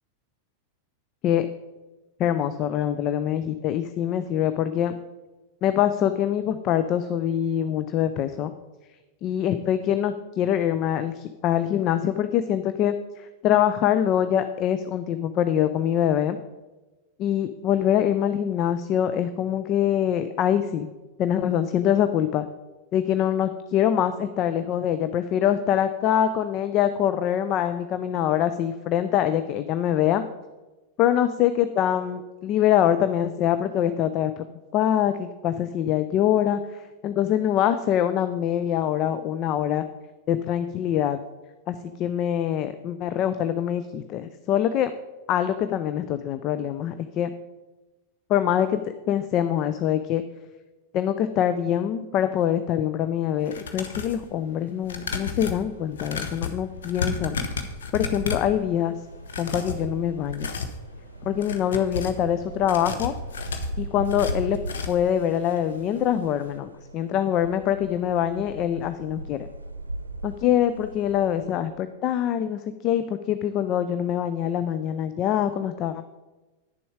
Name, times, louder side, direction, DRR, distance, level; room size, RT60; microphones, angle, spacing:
voice 1, 2.2-4.9 5.6-8.5 9.2-16.4 17.2-20.9 21.2-22.5 22.9-30.2 31.0-34.4 34.7-39.9 40.3-41.2 41.7-44.9 45.3-47.3 48.3-48.8 49.1-50.2 50.9-57.4 57.9-58.9 59.4-60.5 61.3-63.2 63.8-64.6 64.9-69.5 70.2-76.0, left 10 dB, 35° left, 11 dB, 0.4 m, -24 dB
sound 1, 53.4-54.2 54.8-58.6 59.2-59.8 60.2-60.8 61.3-62.2 62.6-65.1 65.5-65.6 65.9-66.0, left 5 dB, 65° left, 0.9 m, -32 dB
sound 2, 58.1-71.6, right 2 dB, 80° right, 0.7 m, -38 dB
10.0 x 6.9 x 4.7 m, 1.1 s
figure-of-eight pair, 90°, 0 cm